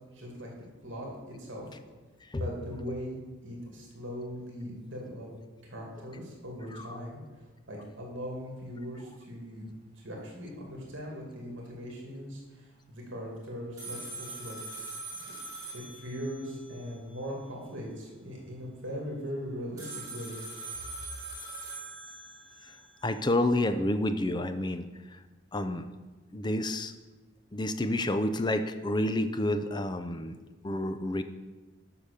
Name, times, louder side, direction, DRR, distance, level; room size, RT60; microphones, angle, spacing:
voice 1, 0.1-0.5 0.8-1.6 2.4-3.2 3.4-5.3 5.6-7.2 7.7-9.7 10.0-14.6 15.7-20.3, equal, 65° right, -2 dB, 2.5 m, -40 dB
sound 1, 13.8-17.2 19.8-23.2, right 3 dB, 20° right, 3.4 m, -42 dB
voice 2, 23.0-24.9 25.5-25.8 26.3-26.9 27.5-30.4 30.6-31.2, left 1 dB, 20° left, 9 dB, 0.5 m, -29 dB
8.3 x 5.9 x 6.7 m, 1.2 s
head